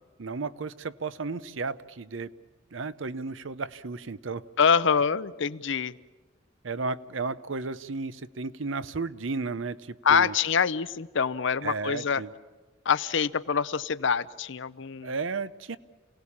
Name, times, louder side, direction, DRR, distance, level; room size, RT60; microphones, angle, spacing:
voice 1, 0.2-2.3 2.7-4.4 6.6-10.4 11.6-12.3 15.0-15.8, right 4 dB, 70° right, 15 dB, 0.8 m, -33 dB
voice 2, 4.6-5.9 10.0-12.2 12.9-15.1, left 6 dB, 65° left, 16 dB, 0.7 m, -25 dB
28.5 x 18.0 x 8.6 m, 1.3 s
head